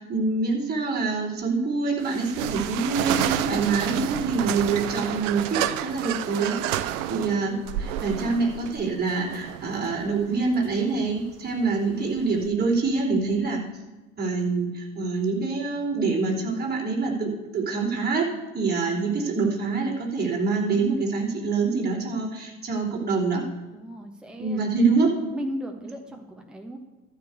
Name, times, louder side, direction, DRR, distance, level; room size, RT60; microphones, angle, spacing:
voice 1, 0.0-13.6 14.2-23.4 24.4-25.2, right 4 dB, 20° right, -3 dB, 3.4 m, -25 dB
sound 1, 2.0-12.5, right 12 dB, 60° right, 0.8 m, -30 dB
voice 2, 23.7-24.6 25.2-26.8, equal, ahead, 2 dB, 1.3 m, -36 dB
12.5 x 5.1 x 8.3 m, 1.1 s
figure-of-eight pair, 75°, 43 cm